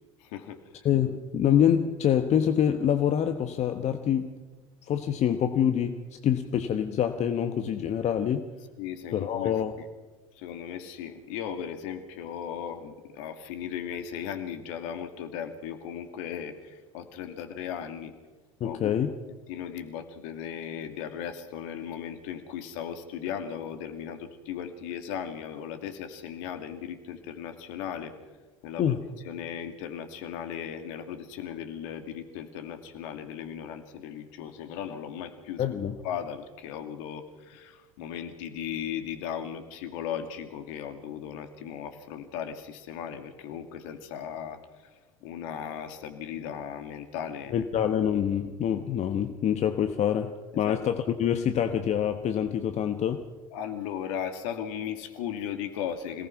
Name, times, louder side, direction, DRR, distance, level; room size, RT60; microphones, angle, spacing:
voice 1, 0.2-0.9 8.8-9.9 10.4-18.1 18.6-18.9 19.5-28.1 28.6-28.9 29.2-35.7 36.0-44.6 45.2-47.6 50.7-50.8 53.5-56.3, left 8 dB, 65° left, 7 dB, 2.4 m, -37 dB
voice 2, 0.8-4.3 4.9-8.5 9.1-9.7 18.6-19.1 28.8-29.0 35.6-36.0 47.5-53.2, left 9 dB, 40° left, 8 dB, 1.3 m, -26 dB
26.0 x 18.5 x 6.0 m, 1.3 s
figure-of-eight pair, 70°, 17 cm